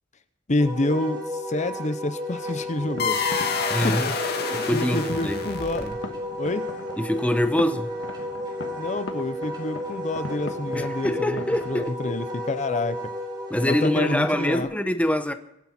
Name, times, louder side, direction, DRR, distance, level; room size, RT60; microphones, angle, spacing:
voice 1, 0.5-3.2 3.8-4.1 4.7-5.9 6.4-6.7 8.8-13.0 13.6-14.7, left 2 dB, 40° left, 0.8 m, -28 dB
Wind instrument woodwind instrument, 0.6-14.6, left 1 dB, 25° right, 3.6 m, -33 dB
sound 1, 2.5-11.8, left 2 dB, 70° left, 1.5 m, -40 dB
sound 2, 3.0-6.1, left 5 dB, 55° left, 1.9 m, -28 dB
voice 2, 3.7-4.1 4.5-5.4 5.8-6.0 7.0-7.9 10.7-12.2 13.5-15.3, left 1 dB, 5° left, 0.8 m, -25 dB
24.0 x 10.0 x 4.3 m
head